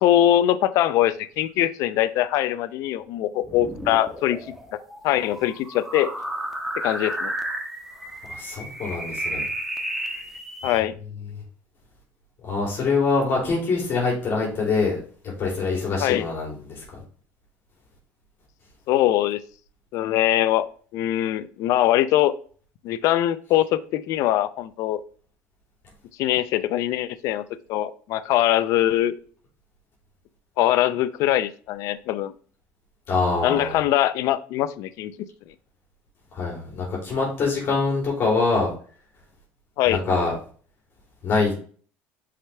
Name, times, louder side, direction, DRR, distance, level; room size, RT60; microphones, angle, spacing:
voice 1, 0.0-4.4 5.0-6.1 6.8-7.3 10.6-10.9 16.0-16.3 18.9-19.4 19.9-20.7 20.9-22.3 22.8-25.0 26.2-27.4 27.7-29.1 30.6-32.3 33.4-35.1 39.8-40.0, left 13 dB, 70° left, 13 dB, 0.6 m, -22 dB
sound 1, 3.4-10.8, right 1 dB, 5° right, 1.2 m, -32 dB
voice 2, 8.2-9.4 12.4-16.8 33.1-33.8 36.3-38.7 39.9-40.3 41.2-41.6, left 4 dB, 45° left, -3 dB, 3.2 m, -24 dB
5.7 x 5.0 x 3.3 m, 0.43 s
cardioid pair, 110°, 6 cm